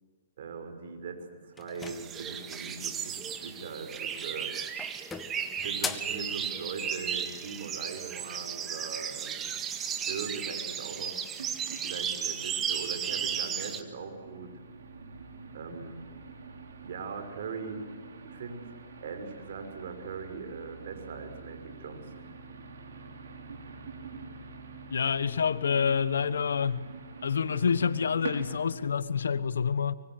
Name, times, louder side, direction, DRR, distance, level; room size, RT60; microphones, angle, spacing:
voice 1, 0.4-4.5 5.6-9.5 10.0-11.2 11.8-14.5 15.5-16.0 16.8-17.8 18.2-18.7 19.0-22.3, right 5 dB, 65° right, 5.9 m, -40 dB
sound 1, 1.6-2.8 4.0-4.4 4.8-6.2, left 5 dB, 10° left, 1.8 m, -39 dB
sound 2, 1.8-13.8, right 8 dB, 20° right, 1.9 m, -35 dB
sound 3, 11.3-28.9, right 4 dB, 80° right, 5.9 m, -46 dB
voice 2, 24.9-26.8 27.2-30.0, left 6 dB, 90° left, 1.3 m, -27 dB
24.0 x 24.0 x 8.0 m
hypercardioid pair, 140°, 0 cm